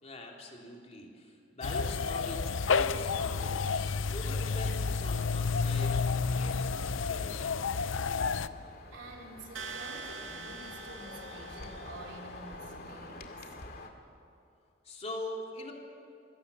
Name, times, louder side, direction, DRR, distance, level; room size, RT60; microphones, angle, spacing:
voice 1, 0.0-6.0 6.3-7.6 14.9-15.7, left 1 dB, 35° left, 0 dB, 3.4 m, -43 dB
sound 1, 1.6-8.5, left 5 dB, 90° left, 0.7 m, -30 dB
sound 2, 7.9-13.9, left 2 dB, 55° left, 2.3 m, -47 dB
voice 2, 8.0-13.3, right 2 dB, 70° right, 0 dB, 4.1 m, -49 dB
sound 3, 9.5-12.5, right 4 dB, 85° right, 2.0 m, -44 dB
27.0 x 22.0 x 7.1 m, 2.5 s
head